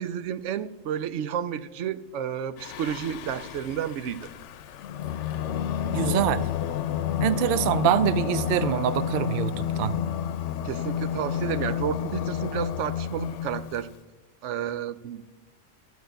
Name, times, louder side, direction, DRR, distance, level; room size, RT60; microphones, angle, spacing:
voice 1, 0.0-4.3 10.6-13.9 14.4-15.3, right 9 dB, 90° right, 14 dB, 0.9 m, -31 dB
Singing, 2.6-13.9, left 10 dB, 80° left, 0.9 m, -30 dB
voice 2, 5.9-6.5 7.2-9.9, right 10 dB, 60° right, 15 dB, 0.6 m, -24 dB
14.0 x 4.8 x 7.9 m, 1.1 s
omnidirectional pair, 1.2 m